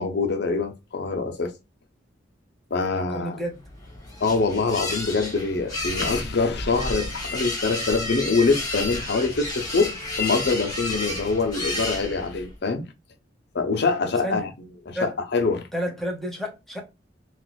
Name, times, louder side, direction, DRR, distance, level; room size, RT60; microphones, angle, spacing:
voice 1, 0.0-1.5 2.7-3.4 4.2-12.9 13.5-14.5 14.9-15.6, left 4 dB, 65° left, 0.6 m, -24 dB
voice 2, 2.9-3.6 14.0-14.5 14.9-15.2 15.7-16.8, equal, ahead, 1.0 m, -31 dB
sound 1, 3.6-12.5, left 2 dB, 20° left, 1.4 m, -31 dB
3.9 x 2.4 x 2.3 m
head